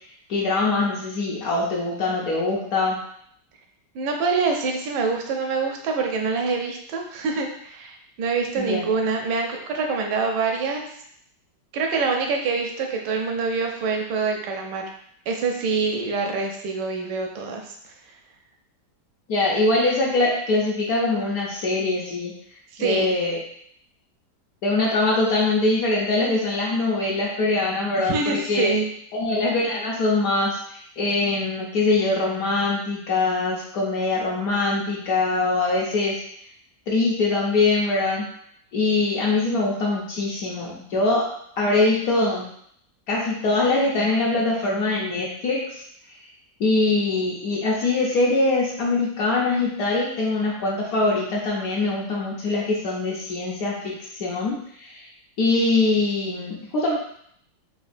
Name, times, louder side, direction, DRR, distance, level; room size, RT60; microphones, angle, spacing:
voice 1, 0.3-3.0 8.6-8.8 19.3-22.3 22.8-23.4 24.6-28.8 29.1-36.2 36.9-38.3 38.7-41.3 41.6-42.5 43.1-45.8 46.6-55.1 55.4-56.9, left 2 dB, 65° left, -4 dB, 1.0 m, -23 dB
voice 2, 3.9-10.8 11.7-14.8 15.3-17.7 22.7-23.1 28.0-28.9, right 4 dB, 85° right, 3 dB, 1.2 m, -25 dB
5.1 x 2.3 x 2.5 m, 0.68 s
omnidirectional pair, 1.8 m